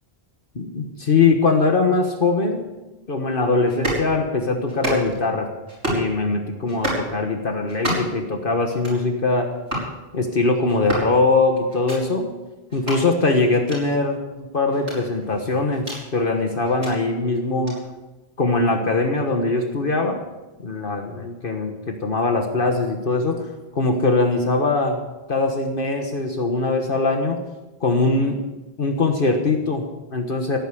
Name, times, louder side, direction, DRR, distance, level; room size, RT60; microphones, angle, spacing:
voice 1, 0.5-2.6 3.1-5.5 5.9-9.5 10.1-12.3 12.7-17.8 18.4-20.2 20.6-23.5 23.7-25.0 25.3-27.4 27.8-28.4 28.8-30.6, left 3 dB, 55° left, 4 dB, 1.5 m, -21 dB
sound 1, 3.7-4.1 4.7-5.2 5.7-6.1 6.7-7.1 7.7-8.2 8.7-9.0 9.7-9.9 10.7-11.1 11.7-12.0 12.7-13.0 13.7-13.8 14.7-16.0 16.6-16.9 17.7-17.8, right 1 dB, 80° right, 6.2 m, -28 dB
16.5 x 9.2 x 6.8 m, 1.1 s
omnidirectional pair, 1.1 m